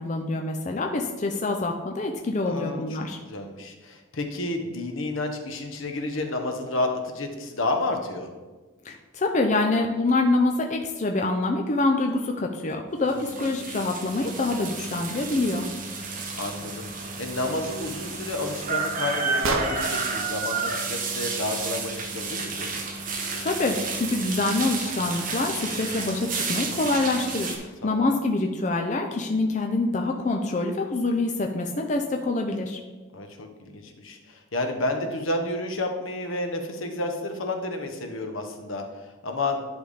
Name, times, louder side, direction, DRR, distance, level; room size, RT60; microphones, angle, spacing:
voice 1, 0.0-3.2 8.8-15.7 23.4-32.8, left 2 dB, 35° left, 2 dB, 0.5 m, -26 dB
voice 2, 2.4-3.0 3.2-8.3 13.0-13.5 16.3-22.7 27.8-28.1 33.1-39.6, left 2 dB, 80° left, 5 dB, 1.0 m, -31 dB
sound 1, 13.1-27.6, right 4 dB, 40° right, 1.0 m, -31 dB
sound 2, 17.0-20.1, right 4 dB, 85° right, 0.8 m, -34 dB
10.5 x 3.5 x 4.9 m, 1.2 s
head